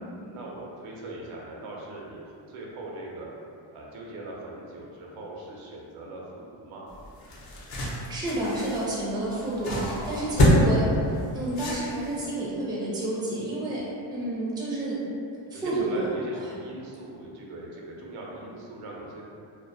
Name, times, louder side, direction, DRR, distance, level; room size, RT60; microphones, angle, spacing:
voice 1, 0.0-3.3 3.7-6.9 9.7-10.3 15.5-19.3, right 2 dB, 85° right, -3 dB, 0.6 m, -40 dB
sound 1, 6.9-12.3, equal, 50° left, 0.6 m, -26 dB
voice 2, 8.1-13.8 14.1-15.0 15.5-16.5, right 1 dB, 10° right, -7 dB, 0.4 m, -30 dB
2.3 x 2.1 x 2.5 m, 2.5 s
cardioid pair, 115°, 49 cm